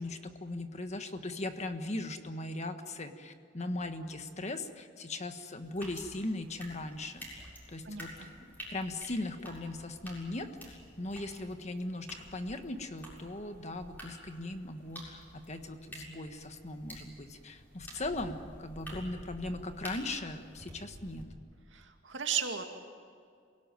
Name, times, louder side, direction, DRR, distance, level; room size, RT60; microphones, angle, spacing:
voice 1, 0.0-21.3, left 2 dB, 40° left, 7 dB, 1.5 m, -39 dB
sound 1, 5.6-21.3, equal, 10° left, 7.1 m, -50 dB
voice 2, 7.8-8.3 21.7-22.6, right 7 dB, 85° right, 4 dB, 2.4 m, -35 dB
27.5 x 18.0 x 9.3 m, 2.2 s
head